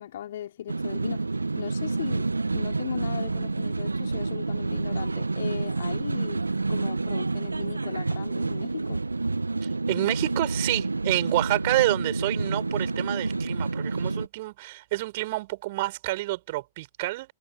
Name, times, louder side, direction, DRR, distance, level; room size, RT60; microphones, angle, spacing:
voice 1, 0.0-6.4 6.7-9.0, left 11 dB, 60° left, 3.7 m, -38 dB
sound 1, 0.7-14.3, right 3 dB, 80° right, 1.7 m, -28 dB
voice 2, 9.6-17.3, right 19 dB, 50° right, 6.5 m, -28 dB
figure-of-eight pair, 105°, 0 cm